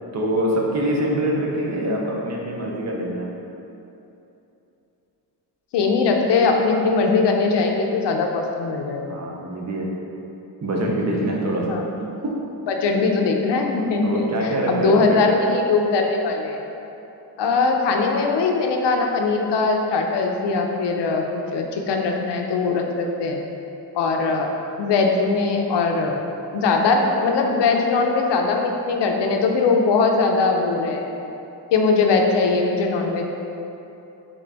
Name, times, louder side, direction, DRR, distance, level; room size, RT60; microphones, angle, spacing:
voice 1, 0.1-3.3 9.1-9.9 10.6-12.4 14.0-15.2, right 1 dB, 40° right, -2 dB, 0.6 m, -24 dB
voice 2, 5.7-9.2 11.7-11.8 12.7-16.6 17.4-23.4 23.9-24.5 24.8-26.2 26.5-31.1 31.7-33.3, left 4 dB, 85° left, 2 dB, 0.6 m, -21 dB
3.8 x 3.6 x 3.4 m, 2.9 s
wide cardioid pair, 150°, 41 cm